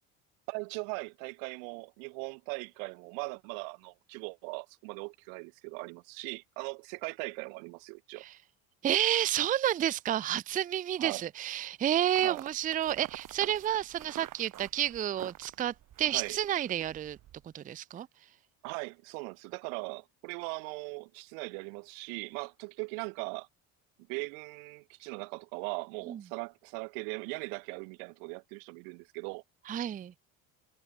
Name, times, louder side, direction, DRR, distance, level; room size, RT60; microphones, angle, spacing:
voice 1, 0.5-8.2 11.0-11.2 12.2-12.4 16.1-16.4 18.6-23.5 24.1-29.4, right 40 dB or more, 85° right, 0.8 m, -39 dB
voice 2, 8.8-17.2 17.5-18.1 26.1-26.2 29.7-30.1, right 11 dB, 20° right, 0.4 m, -30 dB
sound 1, 12.1-17.5, right 13 dB, 50° right, 1.7 m, -48 dB
supercardioid pair, 95°, 41 cm